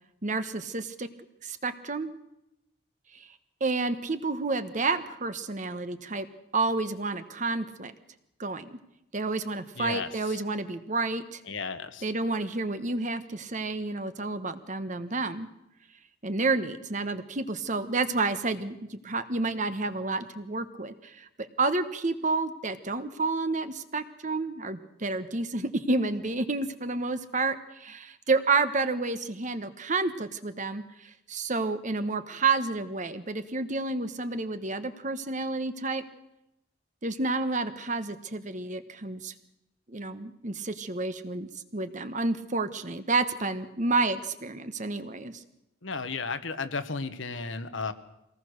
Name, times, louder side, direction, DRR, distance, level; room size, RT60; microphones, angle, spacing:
voice 1, 0.2-1.1 1.4-2.1 3.6-6.3 6.5-7.9 8.4-8.8 9.1-11.4 12.0-15.5 16.2-36.0 37.0-39.3 39.9-45.4, right 3 dB, 40° right, 11 dB, 1.2 m, -30 dB
voice 2, 9.8-10.4 11.5-12.1 45.8-47.9, left 4 dB, 80° left, 9 dB, 1.3 m, -34 dB
23.5 x 18.5 x 6.5 m, 0.86 s
head